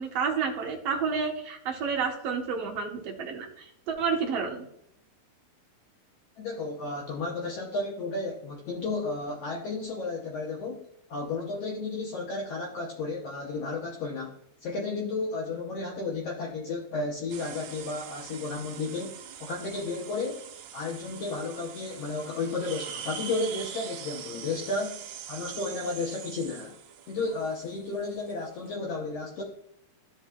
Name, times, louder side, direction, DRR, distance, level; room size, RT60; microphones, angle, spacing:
voice 1, 0.0-4.7, right 5 dB, 65° right, 1 dB, 1.6 m, -30 dB
voice 2, 6.4-14.3 14.6-20.4 20.7-26.7 27.1-29.4, left 3 dB, 85° left, -2 dB, 1.4 m, -33 dB
sound 1, 17.3-28.7, right 9 dB, 85° right, 2.5 m, -43 dB
12.5 x 5.5 x 2.3 m, 0.73 s
omnidirectional pair, 4.1 m